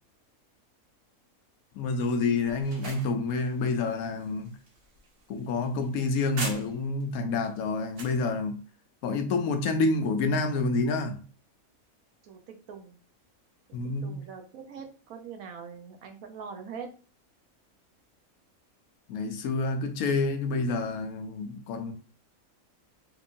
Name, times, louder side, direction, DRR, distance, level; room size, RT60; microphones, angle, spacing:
voice 1, 1.7-4.6 5.3-8.6 9.0-11.2 13.7-14.2 19.1-21.9, left 3 dB, 85° left, 1.1 m, -28 dB
sound 1, 2.4-7.0 7.4-8.2, right 2 dB, 50° right, 1.0 m, -42 dB
voice 2, 12.2-13.0 13.8-16.9, right 6 dB, 75° right, 1.2 m, -43 dB
3.7 x 3.1 x 2.6 m
omnidirectional pair, 1.5 m